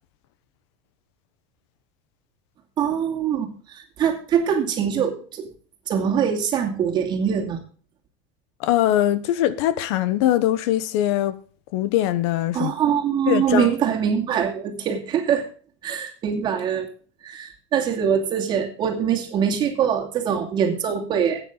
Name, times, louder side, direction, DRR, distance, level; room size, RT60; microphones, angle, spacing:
voice 1, 2.8-5.5 5.9-7.6 12.5-15.4 15.8-16.9 17.2-21.4, right 8 dB, 30° right, 2.6 m, -23 dB
voice 2, 8.6-11.4 11.7-12.7 13.3-13.7, left 13 dB, 60° left, 1.0 m, -21 dB
14.0 x 9.2 x 3.9 m
supercardioid pair, 160°, 16 cm